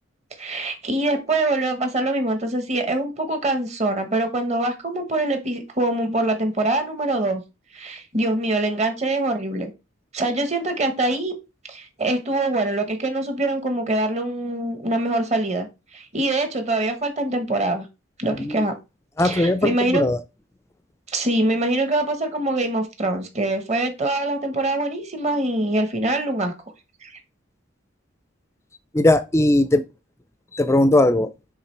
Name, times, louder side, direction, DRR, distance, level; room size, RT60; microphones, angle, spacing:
voice 1, 0.4-7.4 7.7-9.7 10.1-11.3 11.7-17.8 18.2-18.8 19.2-20.0 21.1-26.5 27.0-27.1, right 2 dB, 35° right, 1.2 m, -24 dB
voice 2, 19.2-20.2 28.9-29.8 30.5-31.3, left 1 dB, 15° left, 0.4 m, -19 dB
9.6 x 3.7 x 3.2 m
head